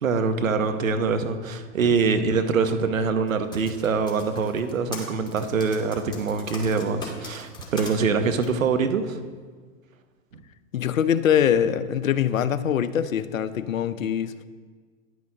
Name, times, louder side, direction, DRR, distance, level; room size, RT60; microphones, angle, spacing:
voice 1, 0.0-9.2, right 5 dB, 80° right, 8 dB, 1.0 m, -24 dB
Typing, 3.3-7.9 8.4-8.5, left 3 dB, 10° left, 2.4 m, -39 dB
voice 2, 10.7-14.3, left 9 dB, 80° left, 14 dB, 0.7 m, -23 dB
11.0 x 9.4 x 3.8 m, 1.5 s
hypercardioid pair, 100°, 39 cm